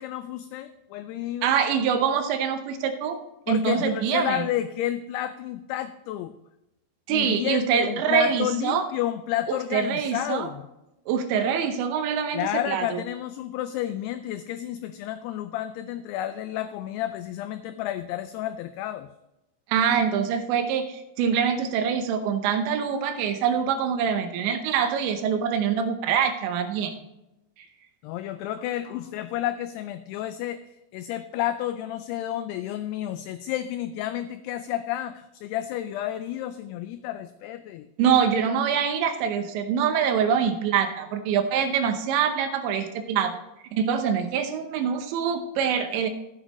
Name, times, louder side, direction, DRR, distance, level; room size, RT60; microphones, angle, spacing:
voice 1, 0.0-1.5 3.5-6.3 7.1-10.6 12.3-19.1 28.0-30.6 30.9-37.9, left 12 dB, 85° left, 10 dB, 2.4 m, -31 dB
voice 2, 1.4-3.2 3.5-4.5 7.1-8.9 9.5-10.5 11.1-13.0 19.7-26.9 38.0-43.4 43.7-46.1, right 7 dB, 85° right, 7 dB, 3.2 m, -24 dB
13.5 x 8.5 x 3.0 m, 0.92 s
omnidirectional pair, 5.1 m